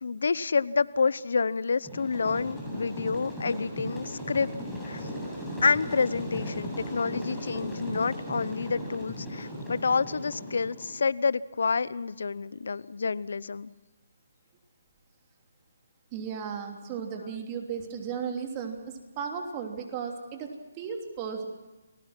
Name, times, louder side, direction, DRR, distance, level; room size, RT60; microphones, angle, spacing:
voice 1, 0.0-4.5 4.8-5.0 5.6-13.7, left 5 dB, 70° left, 19 dB, 0.8 m, -28 dB
sound 1, 1.8-10.9, equal, ahead, 7.6 m, -37 dB
voice 2, 16.1-21.5, right 6 dB, 25° right, 3 dB, 3.0 m, -35 dB
29.0 x 20.0 x 6.1 m, 1.1 s
figure-of-eight pair, 150°, 0 cm